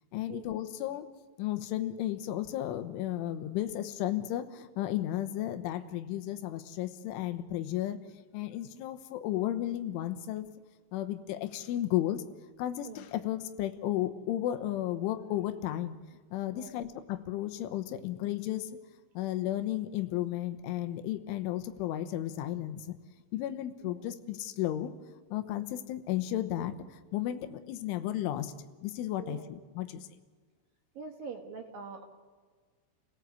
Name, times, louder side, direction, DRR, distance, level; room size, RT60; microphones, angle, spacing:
voice 1, 0.1-1.1 1.4-8.0 8.3-10.5 10.9-12.2 12.6-18.7 19.2-23.0 23.3-24.9 25.3-28.5 28.8-30.1, left 13 dB, 90° left, 8 dB, 3.6 m, -34 dB
voice 2, 29.2-29.5 30.9-32.0, right 5 dB, 55° right, 4 dB, 3.1 m, -44 dB
29.5 x 18.0 x 8.3 m, 1.5 s
omnidirectional pair, 5.4 m